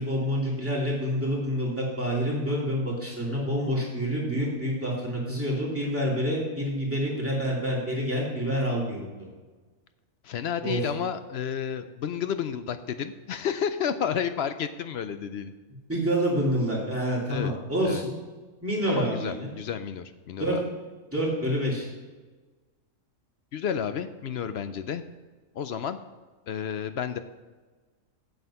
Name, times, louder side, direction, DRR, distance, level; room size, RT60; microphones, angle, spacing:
voice 1, 0.0-9.1 10.6-10.8 15.9-18.1 18.6-19.5 20.4-20.6 21.1-21.9, equal, 10° right, -5 dB, 2.7 m, -27 dB
voice 2, 10.2-15.5 17.3-17.6 17.8-18.0 18.9-20.6 23.5-25.0 25.5-26.0 26.5-27.2, left 8 dB, 65° left, 11 dB, 0.7 m, -31 dB
8.3 x 7.7 x 5.7 m, 1.3 s
omnidirectional pair, 1.5 m